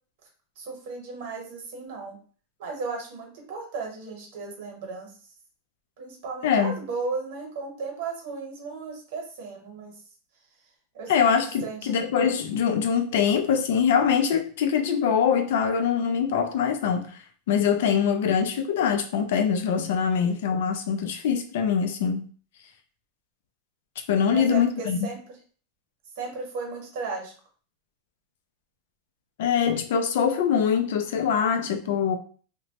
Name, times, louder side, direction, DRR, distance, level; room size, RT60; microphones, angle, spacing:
voice 1, 0.6-2.2 2.6-5.1 6.0-9.9 10.9-11.1 11.6-12.0 24.3-25.2 26.2-27.3 31.6-32.1, right 4 dB, 55° right, 1.0 m, -35 dB
voice 2, 6.4-6.8 11.1-17.2 17.5-22.3 24.1-25.1 29.4-32.2, left 7 dB, 60° left, 0.4 m, -23 dB
2.9 x 2.1 x 2.8 m
supercardioid pair, 180°, 0 cm